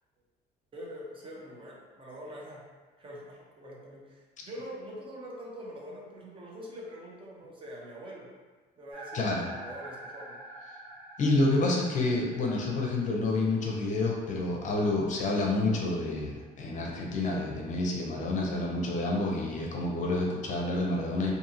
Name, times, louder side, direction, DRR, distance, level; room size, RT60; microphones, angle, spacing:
voice 1, 0.7-2.6 3.0-8.3 8.8-10.4, equal, 30° right, -3 dB, 0.7 m, -44 dB
sound 1, 8.9-16.9, right 2 dB, 80° right, 1.2 m, -49 dB
voice 2, 9.1-9.5 11.2-21.3, left 2 dB, 50° left, -1 dB, 0.6 m, -28 dB
2.7 x 2.6 x 2.5 m, 1.3 s
cardioid pair, 110°, 17 cm